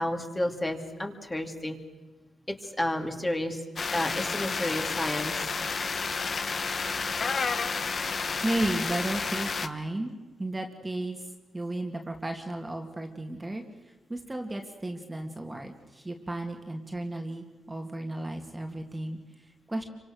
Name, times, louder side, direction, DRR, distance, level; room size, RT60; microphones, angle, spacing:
voice 1, 0.0-1.8 2.5-3.6 3.9-5.5, left 1 dB, 15° left, 4 dB, 2.7 m, -31 dB
sound 1, 3.8-9.7, left 5 dB, 45° left, 1.3 m, -31 dB
voice 2, 8.4-11.3 11.5-13.6 14.1-19.8, right 1 dB, 15° right, 4 dB, 2.3 m, -34 dB
28.5 x 25.0 x 6.5 m, 1.2 s
cardioid pair, 105°, 0 cm